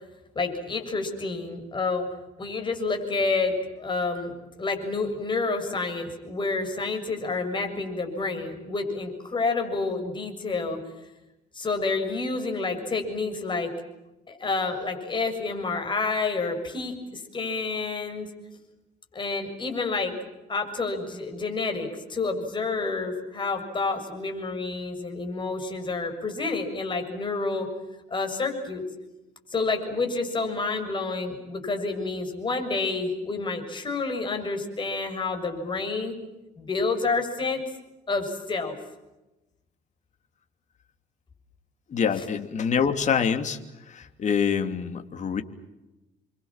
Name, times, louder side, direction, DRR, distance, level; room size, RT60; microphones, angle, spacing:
voice 1, 0.4-2.1 2.4-4.3 4.6-10.8 11.5-13.7 14.3-18.3 19.1-20.1 20.5-27.7 28.1-28.9 29.5-36.1 36.6-37.6 38.1-38.7 42.1-42.3, left 3 dB, 30° left, 5 dB, 7.0 m, -29 dB
voice 2, 41.9-43.6 43.9-45.4, left 7 dB, 45° left, 7 dB, 2.9 m, -25 dB
30.0 x 24.5 x 7.4 m, 1.0 s
cardioid pair, 110°, 17 cm